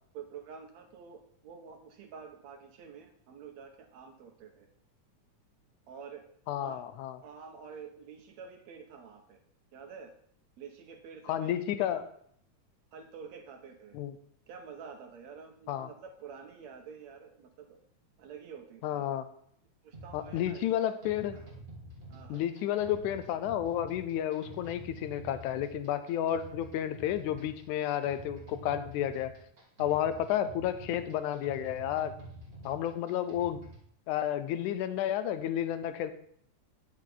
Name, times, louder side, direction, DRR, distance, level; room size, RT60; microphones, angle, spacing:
voice 1, 0.1-4.7 5.9-6.2 6.6-6.8 7.2-9.4 9.7-10.1 10.6-12.1 12.9-14.0 14.5-17.8 18.2-19.1 19.8-20.7 21.3-21.5 22.1-22.5, right 6 dB, 70° right, 4 dB, 1.9 m, -48 dB
voice 2, 6.5-7.2 11.3-12.0 13.9-14.2 15.7-15.9 18.8-19.3 20.1-21.4 22.3-29.3 29.8-32.1 32.6-33.6 34.1-36.1, left 11 dB, 75° left, 11 dB, 2.0 m, -31 dB
sound 1, 19.9-33.9, right 2 dB, 25° right, 1.5 m, -48 dB
10.0 x 6.5 x 4.0 m, 0.66 s
omnidirectional pair, 3.7 m